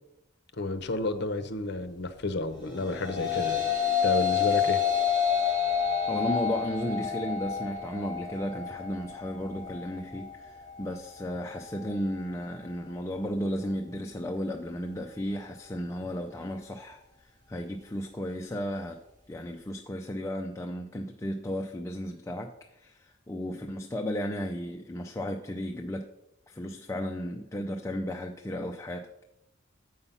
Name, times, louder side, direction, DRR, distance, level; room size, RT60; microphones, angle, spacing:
voice 1, 0.5-3.6 4.0-4.8, left 2 dB, 60° left, 0.8 m, -31 dB
sound 1, 2.7-11.9, left 8 dB, 40° right, 2.0 m, -29 dB
voice 2, 6.1-19.0 19.3-26.1 26.5-29.2, equal, 15° left, 0.4 m, -34 dB
8.0 x 5.6 x 5.5 m
head